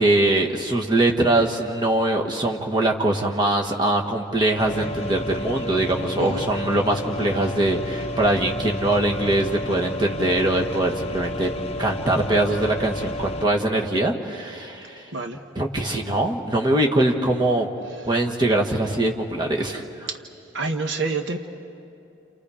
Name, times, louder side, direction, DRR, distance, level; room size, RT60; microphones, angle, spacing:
voice 1, 0.0-11.5 11.8-15.0 15.5-17.7 18.0-20.1, right 1 dB, 20° right, 0 dB, 1.5 m, -22 dB
sound 1, 4.6-13.5, left 1 dB, 30° left, 0.8 m, -31 dB
voice 2, 20.5-21.4, right 3 dB, 65° right, 6 dB, 1.0 m, -27 dB
30.0 x 29.5 x 5.0 m, 2.6 s
head